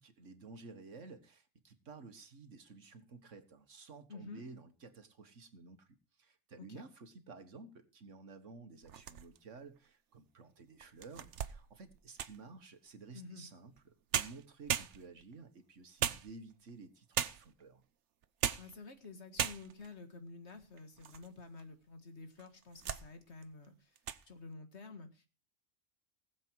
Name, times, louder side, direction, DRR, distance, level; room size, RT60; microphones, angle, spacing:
voice 1, 0.0-5.9 6.2-17.8, right 4 dB, 90° right, 1.9 m, -53 dB
voice 2, 4.1-4.4 6.7-6.8 13.1-13.5 18.6-24.0 24.2-25.3, left 3 dB, 65° left, 2.1 m, -50 dB
sound 1, 8.8-9.6 10.2-10.3 10.8-12.5 13.8-13.9 14.1-15.3 16.0-16.7 17.1-17.6 18.2-18.8 19.0-19.1 19.4-19.9 20.5-21.3 21.6-21.7 22.4-23.1 23.4-23.7 24.0-24.2, right 9 dB, 75° right, 1.1 m, -37 dB
19.0 x 7.6 x 4.6 m
omnidirectional pair, 1.2 m